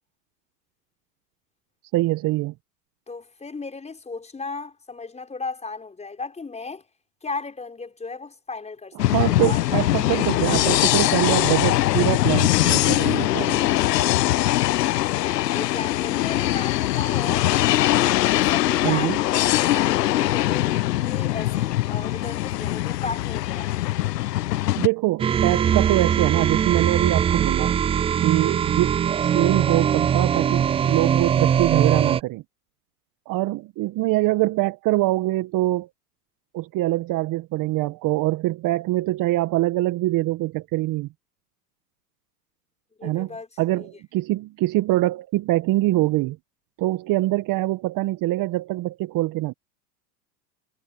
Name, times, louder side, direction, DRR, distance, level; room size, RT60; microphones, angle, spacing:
voice 1, 1.9-2.5 9.1-13.6 18.8-19.2 24.8-27.8 28.2-32.4 33.3-35.9 36.5-41.1 43.0-43.3 43.6-46.4 46.8-49.5, right 17 dB, 40° right, 1.7 m, -24 dB
voice 2, 3.1-6.8 7.2-9.6 15.2-17.5 17.9-23.7 43.0-43.9, left 4 dB, 15° left, 5.7 m, -35 dB
sound 1, 9.0-24.9, left 15 dB, 80° left, 0.9 m, -22 dB
sound 2, 25.2-32.2, right 8 dB, 15° right, 0.4 m, -21 dB
hypercardioid pair, 100°, 48 cm